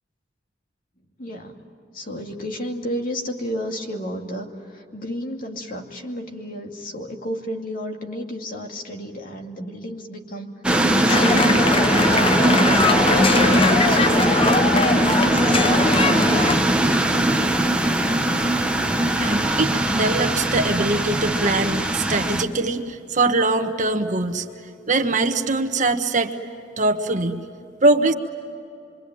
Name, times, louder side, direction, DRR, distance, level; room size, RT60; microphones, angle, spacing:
voice 1, 1.2-1.6 1.9-10.5 11.0-14.2 14.8-15.6, equal, 50° left, 2 dB, 2.5 m, -32 dB
sound 1, 10.6-22.4, right 1 dB, 5° right, 1.1 m, -20 dB
sound 2, 11.1-16.6, left 3 dB, 30° left, 0.8 m, -21 dB
voice 2, 19.2-24.5 24.9-26.3 26.8-27.4 27.8-28.1, right 2 dB, 45° right, 6 dB, 1.4 m, -22 dB
26.5 x 24.0 x 9.3 m, 2.5 s
head